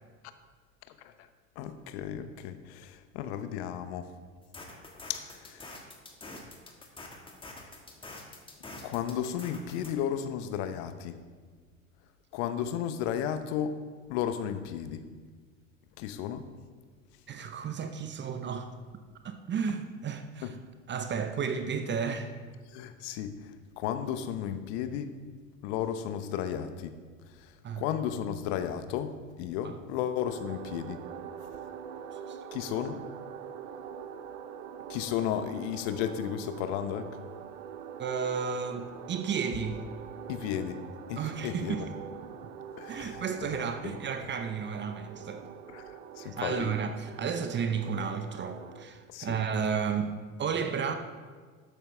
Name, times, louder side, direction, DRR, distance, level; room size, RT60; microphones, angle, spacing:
voice 1, 1.6-4.1 5.1-5.6 8.8-11.2 12.3-13.8 14.1-15.0 16.0-16.4 20.4-20.5 22.7-23.3 23.8-25.1 25.6-26.9 27.8-31.0 32.5-33.0 34.9-37.1 40.3-40.8 41.1-41.9 42.8-43.2 43.5-44.0 45.7-45.8 46.2-46.7 49.1-49.4, left 9 dB, 55° left, 10 dB, 1.0 m, -33 dB
sound 1, 4.4-9.9, left 2 dB, 15° left, 1.8 m, -46 dB
voice 2, 17.3-18.7 19.2-20.6 20.9-22.3 27.6-27.8 29.6-29.8 32.3-32.4 38.0-39.8 41.2-41.9 42.9-45.4 46.2-50.9, right 6 dB, 30° right, 8 dB, 0.8 m, -33 dB
sound 2, 30.3-48.8, right 8 dB, 65° right, 0.8 m, -44 dB
12.5 x 9.0 x 3.4 m, 1.6 s
figure-of-eight pair, 75°, 39 cm